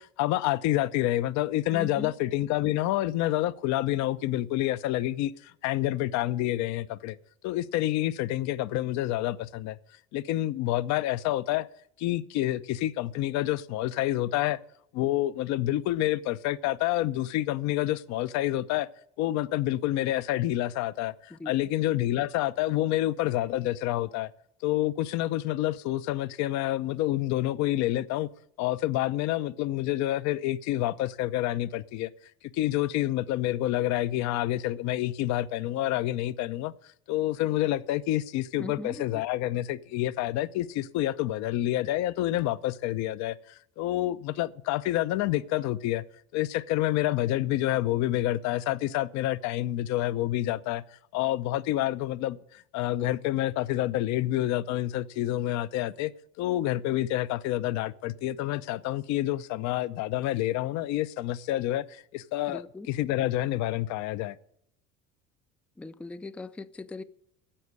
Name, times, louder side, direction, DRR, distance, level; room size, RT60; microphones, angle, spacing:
voice 1, 0.0-7.2 7.4-9.8 10.1-11.7 12.0-14.6 14.9-18.9 19.2-24.3 24.6-28.3 28.6-32.1 32.5-36.7 37.1-46.0 46.3-50.8 51.1-56.1 56.4-62.6 62.9-64.4, left 14 dB, 60° left, 0.6 m, -28 dB
voice 2, 1.7-2.1 21.3-21.7 38.6-39.1 62.5-62.9 65.8-67.0, left 2 dB, 5° left, 0.3 m, -40 dB
9.9 x 7.4 x 8.1 m
supercardioid pair, 100°, 31 cm